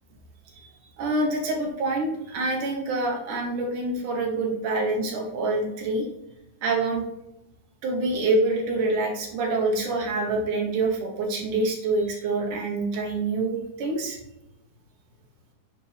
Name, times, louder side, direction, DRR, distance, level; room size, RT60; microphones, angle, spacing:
voice 1, 1.0-6.1 6.6-7.1 7.8-14.2, right 2 dB, 90° right, 0 dB, 2.9 m, -26 dB
9.2 x 4.3 x 3.4 m, 0.92 s
omnidirectional pair, 3.5 m